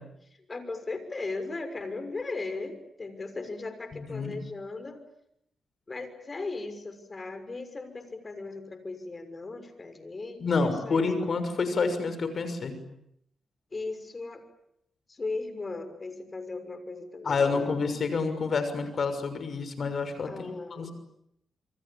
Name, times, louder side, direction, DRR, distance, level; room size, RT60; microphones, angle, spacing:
voice 1, 0.5-5.0 5.9-11.3 13.7-14.4 15.1-17.8 20.2-20.9, left 3 dB, 35° left, 10 dB, 6.3 m, -37 dB
voice 2, 3.9-4.3 10.4-12.8 17.2-20.9, left 4 dB, 60° left, 10 dB, 6.5 m, -28 dB
28.0 x 24.0 x 8.8 m, 0.76 s
cardioid pair, 60°, 0 cm